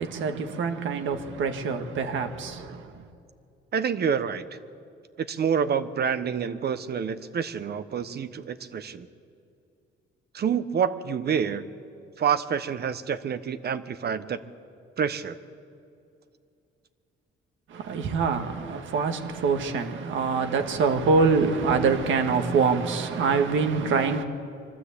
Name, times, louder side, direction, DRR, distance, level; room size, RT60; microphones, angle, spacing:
voice 1, 0.0-3.0 17.7-24.2, right 5 dB, 75° right, 1.8 m, -25 dB
voice 2, 3.7-4.4 5.2-9.1 10.3-11.6 12.2-14.4 15.0-15.4, right 7 dB, 55° right, 1.1 m, -27 dB
24.5 x 13.0 x 8.4 m
cardioid pair, 90°, 20 cm